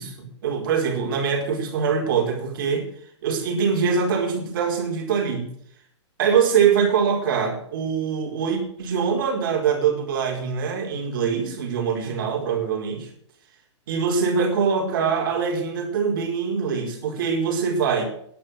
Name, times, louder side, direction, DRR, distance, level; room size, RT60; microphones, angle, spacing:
voice 1, 0.0-2.9 3.2-5.5 6.2-13.1 13.9-18.0, right 6 dB, 45° right, 2 dB, 4.8 m, -23 dB
13.0 x 11.5 x 6.4 m, 0.65 s
supercardioid pair, 175°, 15 cm